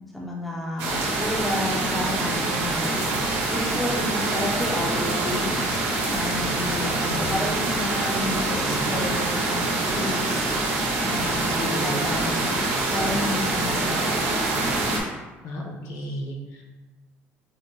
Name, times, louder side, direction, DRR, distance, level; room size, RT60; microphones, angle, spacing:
voice 1, 0.1-3.2 3.5-5.6 6.0-10.5 11.0-12.5 12.9-14.1, left 1 dB, 5° left, -3 dB, 0.4 m, -31 dB
sound 1, 0.8-15.0, right 2 dB, 85° right, 0.8 m, -25 dB
voice 2, 6.8-7.4 11.6-12.0 15.4-16.6, left 1 dB, 70° left, -1 dB, 0.7 m, -33 dB
5.1 x 2.0 x 2.6 m, 1.2 s
cardioid pair, 170°, 5 cm